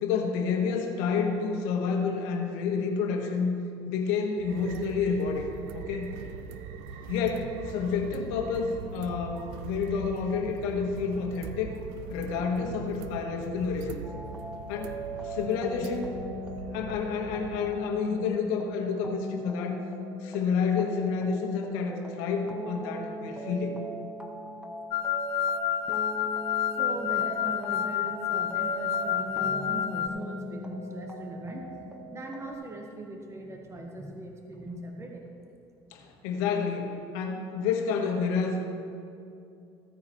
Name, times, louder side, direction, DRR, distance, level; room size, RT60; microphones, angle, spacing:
voice 1, 0.0-3.5 3.8-5.5 5.7-6.1 7.1-11.8 12.1-14.0 14.7-16.1 16.7-19.8 20.2-23.8 35.9-38.6, left 5 dB, 80° left, 2 dB, 1.3 m, -29 dB
sound 1, 4.4-17.7, right 7 dB, 80° right, 0.6 m, -42 dB
sound 2, 14.0-32.5, right 1 dB, 10° right, 1.2 m, -40 dB
sound 3, 24.9-30.1, left 10 dB, 55° left, 0.4 m, -29 dB
voice 2, 26.7-35.3, right 2 dB, 25° right, 1 dB, 1.3 m, -40 dB
15.5 x 9.6 x 3.1 m, 2.6 s
supercardioid pair, 75°, 11 cm